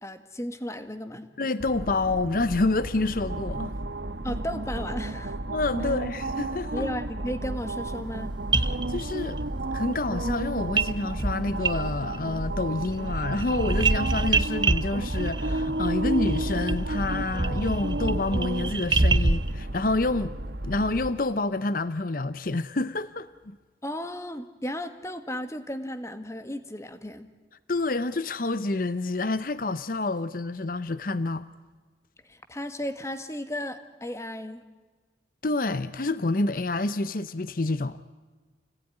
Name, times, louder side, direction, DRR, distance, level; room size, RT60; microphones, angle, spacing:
voice 1, 0.0-1.3 4.2-5.4 5.8-5.9 6.7-8.3 23.8-27.3 32.3-34.6, equal, 15° left, 1.8 m, -34 dB
voice 2, 1.4-3.7 5.5-6.9 8.6-9.4 9.7-20.3 20.6-23.6 27.7-31.5 35.4-38.0, left 2 dB, 50° left, 0.8 m, -28 dB
sound 1, 1.6-21.1, right 2 dB, 70° right, 1.3 m, -32 dB
sound 2, 8.2-8.3 8.5-9.5 10.8-10.9 11.2-12.2 12.5-19.5, right 3 dB, 25° right, 0.8 m, -27 dB
29.5 x 19.5 x 10.0 m
head